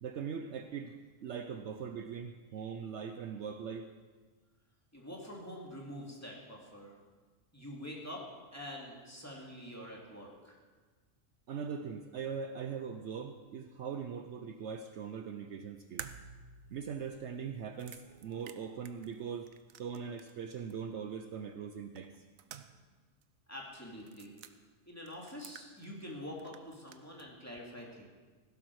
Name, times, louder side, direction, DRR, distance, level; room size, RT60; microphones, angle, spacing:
voice 1, 0.0-3.9 11.5-16.1 16.7-19.5 19.8-22.1, right 6 dB, 65° right, 8 dB, 0.9 m, -41 dB
voice 2, 4.9-7.0 7.5-8.3 8.5-10.6 23.5-24.5 24.8-28.1, left 1 dB, 10° left, -3 dB, 2.6 m, -46 dB
sound 1, 16.0-20.4 20.7-20.8 22.0-23.0 23.2-23.3 24.0-24.5 25.1-26.1 26.4-27.3, right 8 dB, 90° right, 1.1 m, -51 dB
16.0 x 12.0 x 4.8 m, 1.4 s
omnidirectional pair, 1.4 m